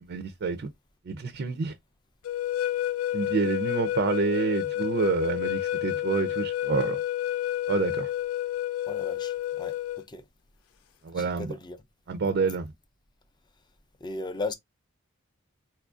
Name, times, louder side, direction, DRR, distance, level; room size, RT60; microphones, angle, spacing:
voice 1, 0.0-0.7 1.0-1.8 3.1-7.0 7.7-8.1 11.0-11.5 12.1-12.7, right 4 dB, 50° right, 0.4 m, -28 dB
sound 1, 2.2-10.0, left 12 dB, 85° left, 0.3 m, -30 dB
voice 2, 8.9-9.7 10.1-10.2 11.2-11.8 14.0-14.5, left 3 dB, 20° left, 0.4 m, -36 dB
4.3 x 2.5 x 2.3 m
head